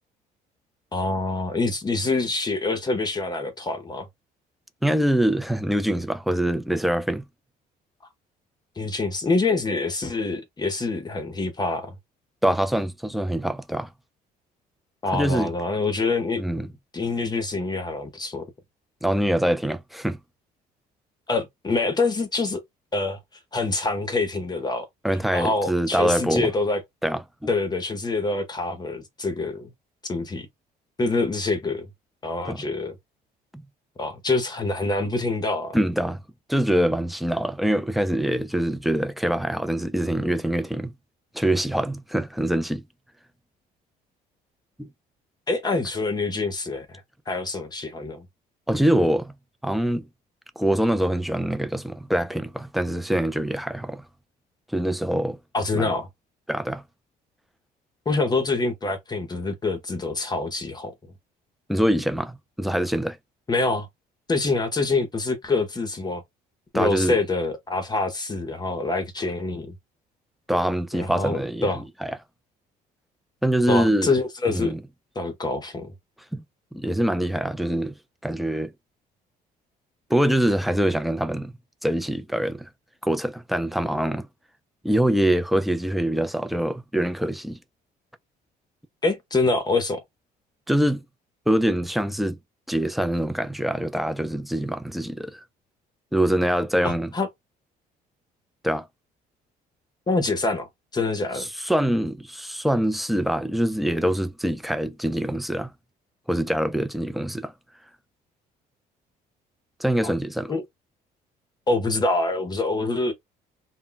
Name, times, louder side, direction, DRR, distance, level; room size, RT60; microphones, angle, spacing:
voice 1, 0.9-4.1 8.8-11.9 15.0-16.7 16.9-18.5 21.3-22.6 22.9-23.2 23.5-24.9 25.3-26.8 27.5-29.7 30.1-30.5 31.0-31.9 32.2-33.0 34.0-35.8 45.5-47.0 47.3-48.3 55.5-56.1 58.1-60.9 63.5-63.9 64.3-66.2 66.7-69.7 70.9-71.8 73.7-74.8 75.2-75.9 89.0-90.0 96.8-97.3 100.1-101.5 110.0-110.1 110.5-110.6 111.7-113.1, left 3 dB, 25° left, 0.7 m, -25 dB
voice 2, 4.8-7.2 12.4-13.9 15.1-15.5 16.4-16.7 19.0-20.2 25.0-26.5 27.0-27.5 32.4-32.7 33.5-33.6 35.7-36.2 36.5-40.9 41.3-42.8 44.8-44.9 48.7-49.3 49.6-50.0 50.6-54.0 54.7-55.4 55.7-55.9 56.5-56.8 61.7-63.2 66.7-67.2 70.5-72.2 73.4-74.1 74.5-74.8 76.3-76.4 76.7-77.9 78.2-78.7 80.1-81.5 81.8-82.7 83.0-84.3 84.8-87.6 90.7-91.0 91.5-92.4 92.7-95.4 96.1-97.1 98.6-98.9 101.3-105.7 106.3-107.5 109.8-110.5, right 1 dB, ahead, 0.3 m, -24 dB
2.1 x 2.0 x 3.8 m
cardioid pair, 110°, 17 cm